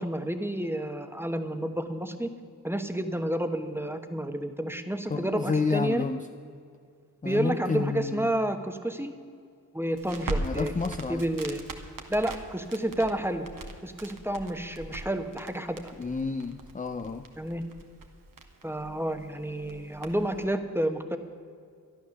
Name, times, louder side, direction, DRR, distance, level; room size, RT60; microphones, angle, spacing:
voice 1, 0.0-2.3 2.6-6.1 7.2-9.1 9.7-10.7 11.1-11.7 12.1-13.5 13.8-15.9 17.4-17.6 18.6-21.2, right 1 dB, 5° right, 7 dB, 1.0 m, -30 dB
voice 2, 5.1-6.2 7.2-8.3 10.3-11.2 16.0-17.3, left 4 dB, 20° left, 7 dB, 0.5 m, -30 dB
Crackle, 9.9-20.4, right 2 dB, 65° right, 1.4 m, -40 dB
12.5 x 11.0 x 7.0 m, 2.3 s
wide cardioid pair, 90°, 36 cm